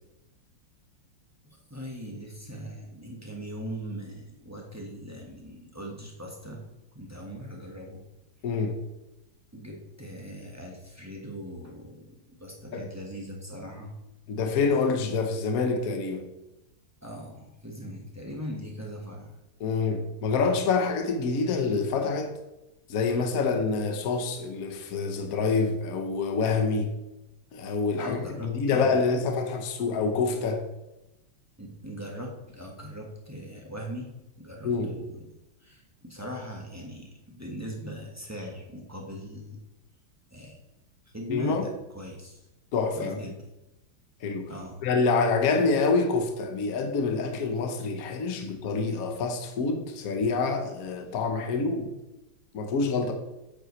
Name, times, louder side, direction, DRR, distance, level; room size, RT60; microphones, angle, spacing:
voice 1, 1.4-6.6 6.9-8.0 9.5-13.9 17.0-19.3 27.9-29.1 31.6-35.2 35.6-39.6 40.3-40.6 41.1-42.5 42.9-43.5 44.5-44.8, equal, 10° right, 1.1 m, -40 dB
voice 2, 8.4-8.8 12.7-12.8 14.3-16.3 19.6-22.3 22.9-26.9 27.5-28.2 28.4-30.6 34.6-34.9 41.3-41.6 42.7-43.2 44.2-44.5 44.8-51.9 52.5-53.1, left 4 dB, 50° left, 1.3 m, -26 dB
8.8 x 7.9 x 3.2 m
omnidirectional pair, 2.3 m